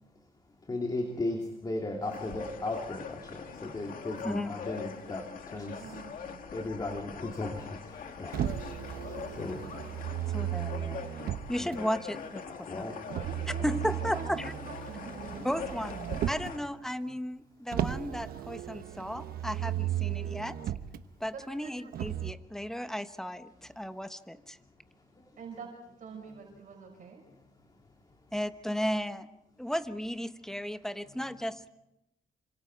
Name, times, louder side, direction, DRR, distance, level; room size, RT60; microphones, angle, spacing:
voice 1, 0.7-5.9 6.5-8.5 8.9-9.7 11.6-11.8 12.5-13.0, left 2 dB, 25° left, 2 dB, 2.7 m, -36 dB
sound 1, 2.0-16.6, left 6 dB, 65° left, 2.2 m, -43 dB
voice 2, 4.2-4.8 10.3-11.1 11.5-12.9 13.6-14.5 15.4-20.6 21.2-24.6 28.3-29.3 29.6-31.7, equal, 5° left, 10 dB, 1.1 m, -35 dB
voice 3, 5.8-6.4 13.2-14.4 14.6-15.4 21.3-21.9 25.4-25.7 26.0-27.2, right 5 dB, 60° right, 1 dB, 6.0 m, -45 dB
Motor vehicle (road), 8.3-11.8 13.1-16.6 17.7-21.0 21.9-22.3, right 11 dB, 75° right, 1.1 m, -35 dB
28.0 x 25.5 x 4.7 m, 0.90 s
cardioid pair, 105°, 15 cm